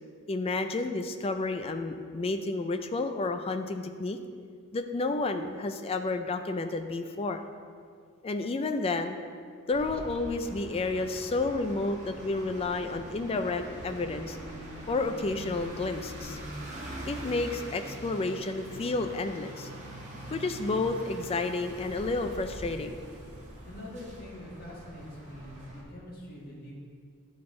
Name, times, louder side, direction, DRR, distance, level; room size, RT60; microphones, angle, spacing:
voice 1, 0.3-4.2 4.7-7.4 8.2-9.2 9.7-14.4 14.9-16.4 17.1-19.7 20.3-23.0, left 3 dB, 25° left, 7 dB, 0.3 m, -31 dB
sound 1, 9.7-25.8, right 1 dB, 35° right, 1.0 m, -43 dB
voice 2, 23.6-26.8, left 1 dB, 40° left, -4 dB, 1.5 m, -44 dB
10.5 x 4.0 x 3.7 m, 2.1 s
head